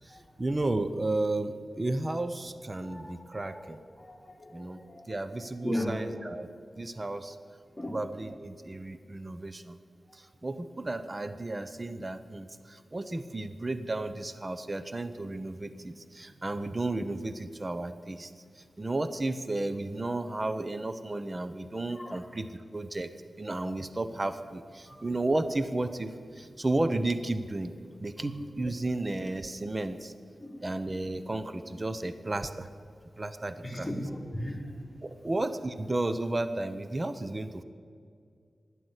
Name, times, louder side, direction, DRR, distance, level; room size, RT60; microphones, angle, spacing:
voice 1, 0.0-3.8 4.5-4.8 5.1-6.5 6.8-7.4 7.9-9.8 10.1-18.3 18.6-23.1 23.4-27.7 28.0-30.1 30.6-32.7 33.2-33.9 35.0-37.6, right 2 dB, 30° right, 11 dB, 0.7 m, -33 dB
voice 2, 2.8-3.1 3.4-5.2 5.6-5.9 7.8-8.0 21.9-22.2 24.9-25.0 28.2-28.5 30.4-30.6 33.6-34.6, equal, 10° left, -2 dB, 3.1 m, -37 dB
12.0 x 10.0 x 8.0 m, 2.2 s
cardioid pair, 70°, 0 cm